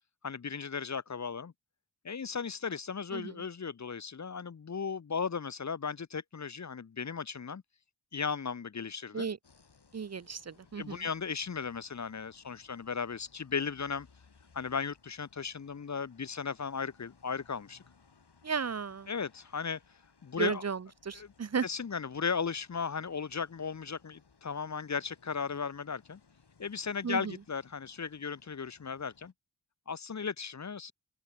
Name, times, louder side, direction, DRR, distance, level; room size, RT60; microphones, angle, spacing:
voice 1, 0.2-1.5 2.0-7.6 8.1-9.3 10.8-14.1 14.5-17.8 19.1-19.8 20.2-20.6 21.1-21.3 21.6-26.2 26.6-29.3 29.9-30.9, left 5 dB, 45° left, 0.8 m, -36 dB
sound 1, 9.4-29.3, left 5 dB, 75° left, 5.8 m, -64 dB
voice 2, 9.9-11.1 18.4-19.1 20.4-21.7 27.0-27.3, right 6 dB, 40° right, 0.6 m, -34 dB
open air
cardioid pair, 40°, 40 cm